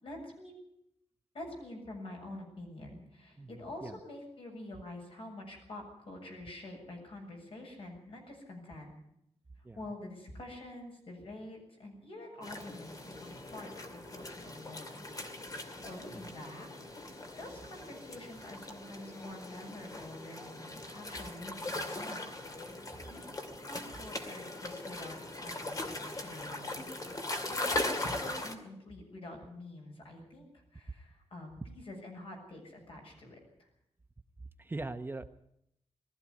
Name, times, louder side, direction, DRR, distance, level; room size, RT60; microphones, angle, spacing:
voice 1, 0.0-0.5 1.3-8.9 9.8-15.0 15.5-22.3 22.7-26.9 27.5-33.7, left 1 dB, 55° left, 1 dB, 7.4 m, -47 dB
sound 1, 12.4-28.6, left 2 dB, 35° left, 2.3 m, -40 dB
voice 2, 34.6-35.3, right 2 dB, 20° right, 8 dB, 0.8 m, -40 dB
20.0 x 14.0 x 9.7 m, 0.76 s
wide cardioid pair, 155°, 11 cm